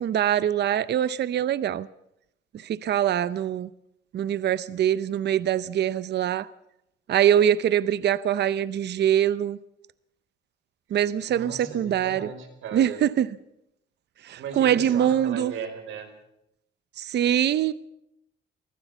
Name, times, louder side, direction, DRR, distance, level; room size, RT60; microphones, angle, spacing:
voice 1, 0.0-1.9 2.5-3.7 4.1-6.5 7.1-9.6 10.9-12.3 12.7-13.3 14.2-15.5 17.0-17.7, right 10 dB, 60° right, 0.7 m, -23 dB
voice 2, 11.3-13.0 14.3-16.1, right 6 dB, 85° right, 4.8 m, -37 dB
24.0 x 16.0 x 7.2 m
cardioid pair, 90°, 20 cm